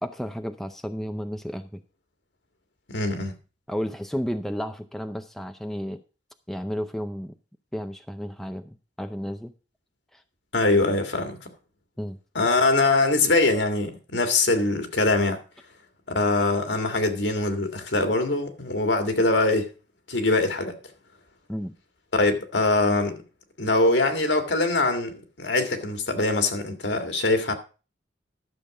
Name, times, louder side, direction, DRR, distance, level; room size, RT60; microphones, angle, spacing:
voice 1, 0.0-1.8 3.7-6.0 6.5-7.3 7.7-9.5 10.1-10.2 12.0-12.2 21.5-21.7, equal, ahead, 0.5 m, -32 dB
voice 2, 2.9-3.3 10.5-11.4 12.4-15.4 16.1-19.7 20.1-20.8 22.1-23.2 23.6-27.5, left 2 dB, 70° left, 1.9 m, -23 dB
12.0 x 7.0 x 4.8 m
head